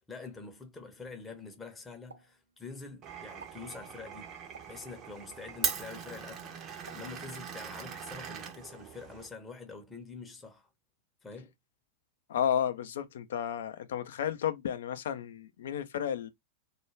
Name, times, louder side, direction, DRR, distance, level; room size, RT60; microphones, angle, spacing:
voice 1, 0.1-4.3 4.7-6.6 6.9-10.7 11.2-11.5, left 4 dB, 15° left, 0.7 m, -46 dB
Explosion, 2.1-3.0 3.3-3.7 4.5-4.9 5.7-6.0 6.9-7.6 8.1-8.3, right 4 dB, 75° right, 0.6 m, -53 dB
Glass, 3.0-9.3, right 6 dB, 30° right, 0.6 m, -40 dB
voice 2, 12.3-16.3, left 9 dB, 60° left, 0.4 m, -32 dB
2.3 x 2.2 x 3.1 m
figure-of-eight pair, 90°, 0 cm